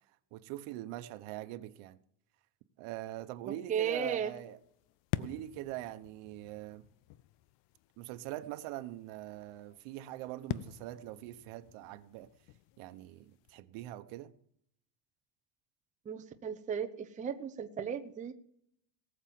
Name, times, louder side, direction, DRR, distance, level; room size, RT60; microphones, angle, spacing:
voice 1, 0.3-2.0 2.8-4.6 5.2-6.9 8.0-12.3 12.8-14.3, right 15 dB, 75° right, 1.2 m, -43 dB
voice 2, 3.5-4.3 16.1-18.3, right 7 dB, 15° right, 0.6 m, -35 dB
sound 1, 4.4-13.6, left 15 dB, 60° left, 0.6 m, -46 dB
19.0 x 7.3 x 7.6 m
cardioid pair, 175°, 50 cm